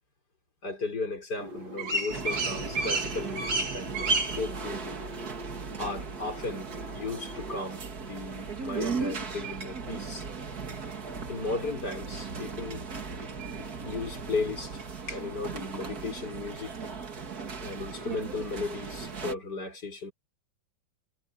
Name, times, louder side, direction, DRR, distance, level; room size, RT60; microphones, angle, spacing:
voice 1, 0.6-5.0 5.8-10.3 11.3-12.8 13.8-16.9 17.6-20.1, left 3 dB, 50° left, 5.3 m, -36 dB
sound 1, 1.4-7.6, right 2 dB, 70° right, 4.1 m, -33 dB
sound 2, 2.1-19.3, right 5 dB, 50° right, 2.6 m, -37 dB
omnidirectional pair, 2.2 m